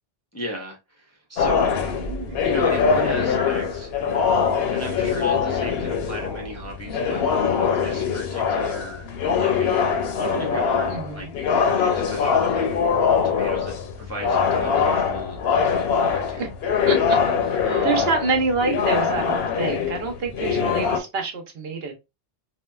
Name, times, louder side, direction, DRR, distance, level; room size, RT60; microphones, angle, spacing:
voice 1, 0.3-1.8 2.4-3.9 4.7-9.9 10.2-11.3 11.6-12.7 13.2-16.5 17.6-18.1, equal, 20° left, 0.5 m, -35 dB
sound 1, 1.4-21.0, left 6 dB, 75° left, 0.8 m, -23 dB
voice 2, 2.1-2.4 10.9-11.2 16.4-16.5 16.9-17.6 17.8-21.9, right 4 dB, 75° right, 1.0 m, -27 dB
3.5 x 2.1 x 2.2 m
omnidirectional pair, 1.0 m